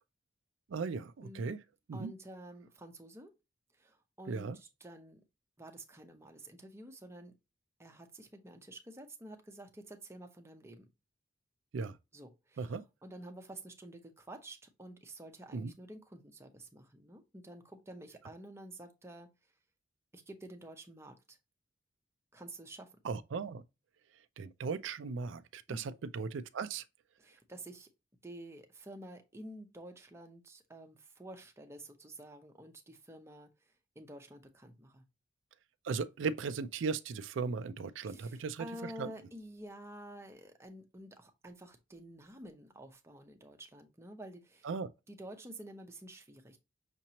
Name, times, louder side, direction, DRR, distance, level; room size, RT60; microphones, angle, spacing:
voice 1, 0.7-1.6 1.9-2.1 4.3-4.6 11.7-11.9 12.6-12.8 15.5-15.7 23.0-23.6 24.4-26.8 35.8-39.1 44.6-44.9, right 5 dB, 80° right, 0.4 m, -37 dB
voice 2, 1.2-1.5 1.9-3.3 3.8-5.2 5.6-7.3 7.8-10.9 12.1-19.3 20.1-21.4 22.3-22.9 25.7-25.9 27.2-27.9 28.2-35.1 38.0-44.7 45.1-46.6, right 1 dB, 15° right, 0.7 m, -50 dB
5.9 x 2.9 x 2.8 m
head